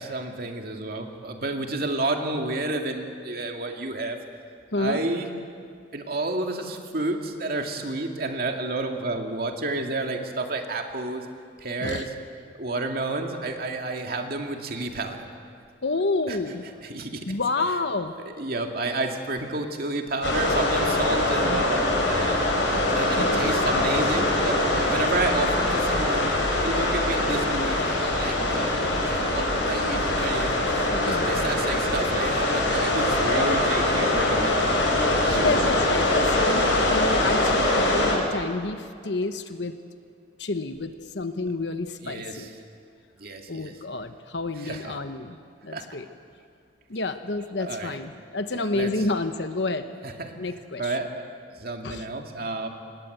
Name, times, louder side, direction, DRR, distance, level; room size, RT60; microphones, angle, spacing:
voice 1, 0.0-4.2 4.8-5.3 5.9-11.3 11.6-12.1 12.6-15.3 16.3-16.4 16.8-17.3 17.6-17.8 18.4-22.5 22.9-26.4 26.6-28.7 29.0-30.6 31.0-34.7 35.2-35.6 36.8-36.9 42.0-42.5 43.2-43.8 44.5-45.0 45.7-45.8 47.6-48.0 48.5-49.1 50.0-50.5 50.8-51.2 51.6-52.7, right 2 dB, 55° right, 3 dB, 2.3 m, -30 dB
voice 2, 15.8-16.6 17.3-18.1 30.9-31.6 35.4-39.8 40.4-42.5 43.5-45.4 45.6-46.1 46.9-49.9 50.4-51.0 51.8-52.0, left 3 dB, 65° left, 8 dB, 1.1 m, -29 dB
sound 1, 20.2-38.1, left 1 dB, 85° left, 5.3 m, -23 dB
26.5 x 19.5 x 8.0 m, 2.3 s
head